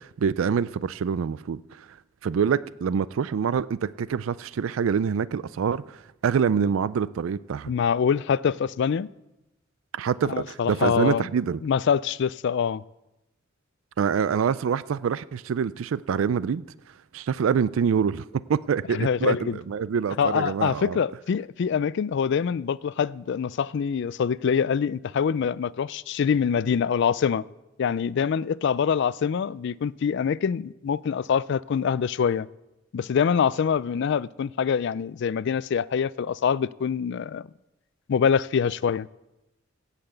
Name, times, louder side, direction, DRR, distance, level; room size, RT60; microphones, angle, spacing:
voice 1, 0.0-1.9 2.2-7.7 9.9-11.6 14.0-16.6 17.1-21.0, right 7 dB, 90° right, 0.4 m, -26 dB
voice 2, 7.7-9.1 10.3-11.2 11.6-12.8 18.9-19.6 20.2-27.4 27.8-32.5 32.9-37.5 38.1-39.1, left 7 dB, 60° left, 0.3 m, -25 dB
17.0 x 5.8 x 8.0 m
head